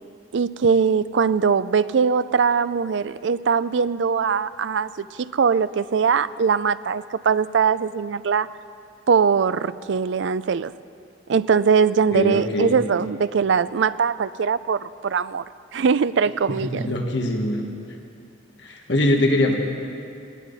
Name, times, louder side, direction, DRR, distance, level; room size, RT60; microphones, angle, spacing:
voice 1, 0.3-8.5 9.1-10.7 11.3-15.4 15.7-16.9, right 6 dB, 70° right, 16 dB, 0.4 m, -21 dB
voice 2, 12.1-12.7 16.7-17.6 18.6-19.6, left 1 dB, 65° left, 1 dB, 1.6 m, -22 dB
20.0 x 17.5 x 4.1 m, 2.5 s
head